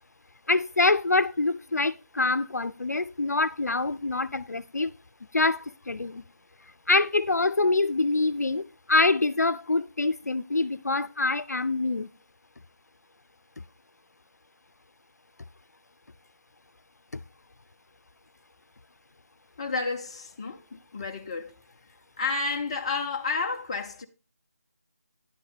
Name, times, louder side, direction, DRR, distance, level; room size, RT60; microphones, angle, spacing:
voice 1, 0.5-4.9 5.3-6.2 6.9-8.6 8.9-12.1, left 3 dB, 85° left, 0.5 m, -25 dB
voice 2, 19.6-21.5 22.2-24.1, left 4 dB, 20° left, 0.5 m, -31 dB
10.0 x 4.1 x 5.0 m
figure-of-eight pair, 165°, 9 cm